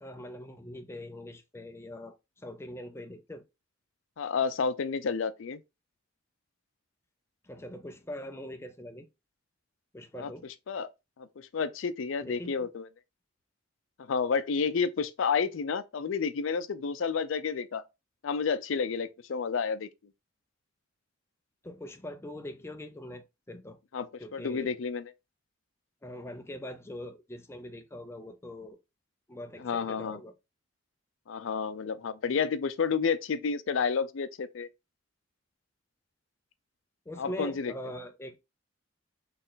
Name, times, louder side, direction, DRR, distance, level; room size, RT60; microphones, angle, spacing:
voice 1, 0.0-3.4 7.4-9.1 9.9-10.5 12.2-12.7 21.6-23.8 24.2-24.8 26.0-28.8 29.3-30.3 37.1-38.4, left 1 dB, 15° left, 0.5 m, -42 dB
voice 2, 4.2-5.6 10.2-10.3 10.7-10.9 11.2-12.9 14.0-17.8 18.2-19.9 23.9-24.1 24.3-25.0 29.6-30.2 31.3-34.7 37.2-37.7, left 5 dB, 80° left, 0.5 m, -30 dB
4.2 x 3.2 x 3.9 m
head